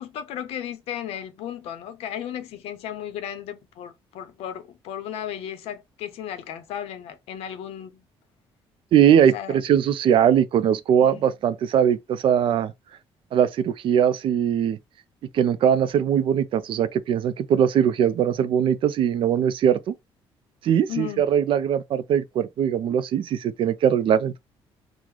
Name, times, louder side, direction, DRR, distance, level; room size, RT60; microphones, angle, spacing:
voice 1, 0.0-8.0 9.3-9.6 11.0-11.3 20.9-21.3, left 10 dB, 85° left, 0.6 m, -35 dB
voice 2, 8.9-12.7 13.3-14.8 15.3-19.9 20.6-24.4, right 9 dB, 60° right, 0.3 m, -21 dB
3.7 x 2.0 x 3.0 m
cardioid pair, 130°, 10 cm